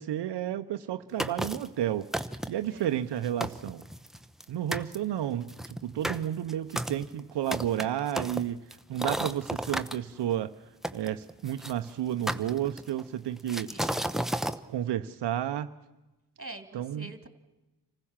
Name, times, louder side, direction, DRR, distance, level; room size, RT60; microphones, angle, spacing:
voice 1, 0.0-2.1 2.5-3.8 4.5-8.6 8.9-10.5 10.9-14.0 14.7-15.7 16.7-17.1, right 11 dB, 85° right, 9 dB, 0.7 m, -31 dB
sound 1, 1.2-1.7 2.1-2.7 3.1-3.2 3.4-4.4 4.7-5.0 5.5-10.0 10.8-11.7 12.3-13.0 13.5-14.6, right 1 dB, ahead, 0.8 m, -33 dB
voice 2, 13.7-14.0 16.4-17.3, right 2 dB, 35° right, 9 dB, 2.3 m, -45 dB
26.0 x 15.5 x 7.3 m, 1.0 s
cardioid pair, 65°, 40 cm